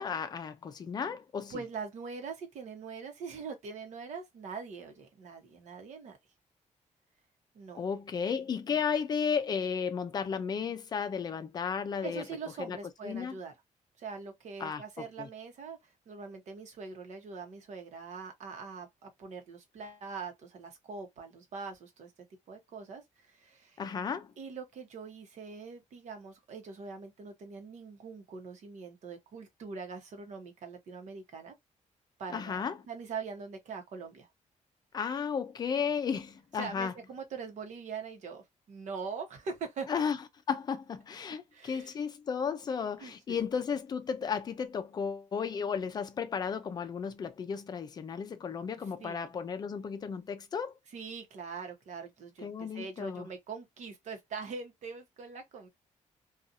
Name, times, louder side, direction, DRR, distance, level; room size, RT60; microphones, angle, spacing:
voice 1, 0.0-1.6 7.7-12.3 12.6-12.8 13.0-13.4 14.6-14.8 15.2-15.3 23.8-24.3 32.3-32.8 34.9-36.9 39.9-40.2 40.5-50.7 52.4-53.3, left 6 dB, 30° left, 0.4 m, -34 dB
voice 2, 1.5-6.2 7.5-7.8 12.0-13.5 14.0-22.1 22.5-23.8 24.4-31.5 32.2-34.3 36.6-39.9 41.5-41.9 43.0-43.5 49.0-49.3 50.9-55.7, right 5 dB, 65° right, 1.0 m, -43 dB
2.6 x 2.4 x 2.6 m
wide cardioid pair, 175°, 13 cm